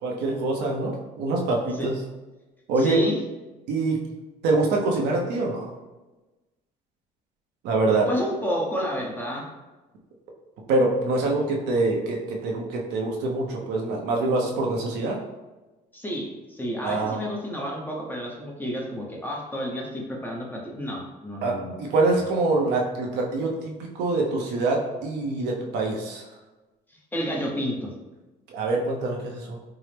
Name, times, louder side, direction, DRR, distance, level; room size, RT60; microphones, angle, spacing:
voice 1, 0.0-1.9 2.7-3.0 3.7-4.0 4.4-5.7 7.6-8.1 10.7-15.2 16.8-17.2 21.4-26.2 28.5-29.6, right 3 dB, 85° right, 0 dB, 0.7 m, -25 dB
voice 2, 2.8-3.2 8.1-9.5 15.9-21.7 22.1-22.2 26.9-27.9, equal, 10° left, -2 dB, 0.7 m, -30 dB
4.5 x 2.0 x 3.3 m, 1.1 s
cardioid pair, 110°, 17 cm